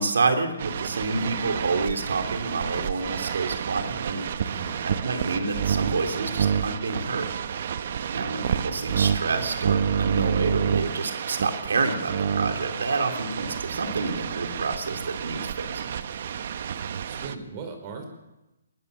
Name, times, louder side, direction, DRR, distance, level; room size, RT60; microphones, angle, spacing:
voice 1, 0.0-4.5 4.8-7.3 8.1-15.9, right 3 dB, 80° right, 6 dB, 3.5 m, -28 dB
sound 1, 0.6-17.4, right 7 dB, 55° right, 1.3 m, -29 dB
voice 2, 4.5-4.8 8.4-8.9 17.1-18.1, right 4 dB, 35° right, 5 dB, 5.4 m, -39 dB
21.0 x 19.5 x 7.0 m, 0.97 s
hypercardioid pair, 150°, 0 cm